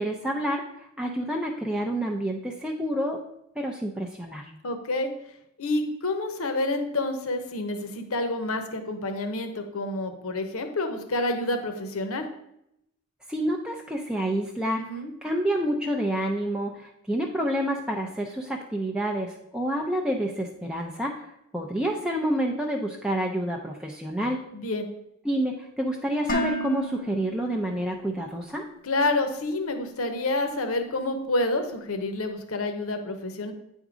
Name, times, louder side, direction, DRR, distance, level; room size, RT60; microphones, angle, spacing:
voice 1, 0.0-3.2 3.6-4.4 13.3-14.8 15.2-21.3 21.5-24.4 25.2-28.6, right 1 dB, 5° right, 0 dB, 0.5 m, -28 dB
voice 2, 4.6-5.1 5.6-12.3 14.8-15.1 24.5-24.9 28.8-33.5, left 2 dB, 70° left, 6 dB, 0.9 m, -28 dB
Dishes pots and pans, 26.3-28.4, equal, 40° left, 0.8 m, -32 dB
9.1 x 3.7 x 4.9 m, 0.79 s
head